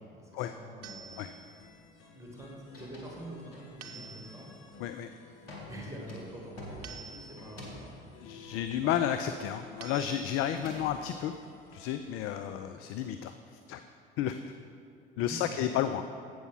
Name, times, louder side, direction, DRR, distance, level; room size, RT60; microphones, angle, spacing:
voice 1, 0.0-1.2 2.1-4.5 5.7-8.0 12.3-12.6 15.1-15.8, right 1 dB, 10° right, -2 dB, 2.2 m, -46 dB
sound 1, 0.8-12.4, left 4 dB, 70° left, 0.9 m, -55 dB
sound 2, 0.8-1.7 3.8-4.7 6.8-7.7 9.8-10.7, right 5 dB, 50° right, 0.8 m, -48 dB
sound 3, 2.1-2.4 2.6-3.2 3.5-4.0 4.5-4.9 5.5-9.5 9.8-11.8, left 1 dB, 85° left, 1.5 m, -48 dB
voice 2, 4.8-5.1 8.2-11.3 11.7-13.8 14.2-14.4 15.2-16.0, left 10 dB, 50° left, 9 dB, 0.4 m, -32 dB
8.1 x 6.1 x 5.5 m, 2.4 s
hypercardioid pair, 65°, 29 cm